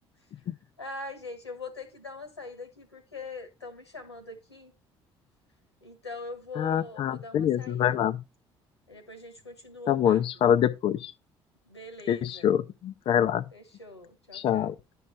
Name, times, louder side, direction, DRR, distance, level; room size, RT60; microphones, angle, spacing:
voice 1, 0.8-4.7 5.8-8.0 8.9-10.2 11.7-12.5 13.5-14.7, left 3 dB, 85° left, 1.3 m, -42 dB
voice 2, 6.6-8.2 9.9-11.1 12.1-13.4 14.3-14.7, left 9 dB, 40° left, 0.5 m, -25 dB
11.0 x 6.2 x 3.2 m
figure-of-eight pair, 50°, 13 cm